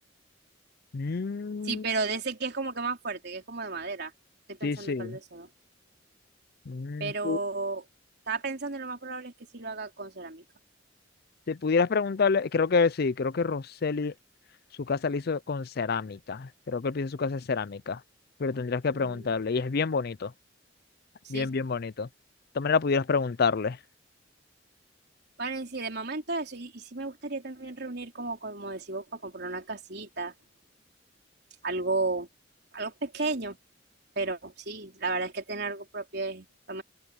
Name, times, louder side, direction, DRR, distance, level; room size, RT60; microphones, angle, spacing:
voice 1, 0.9-1.8 4.6-5.2 6.7-7.4 11.5-14.1 14.9-18.0 18.4-20.3 21.3-22.1 22.6-23.8, left 4 dB, 55° left, 0.5 m, -28 dB
voice 2, 1.6-4.1 4.5-5.5 7.0-7.8 8.3-10.4 18.9-19.4 21.2-21.5 25.4-30.3 31.6-32.3 32.7-33.6 34.2-36.8, right 3 dB, 60° right, 4.0 m, -33 dB
open air
head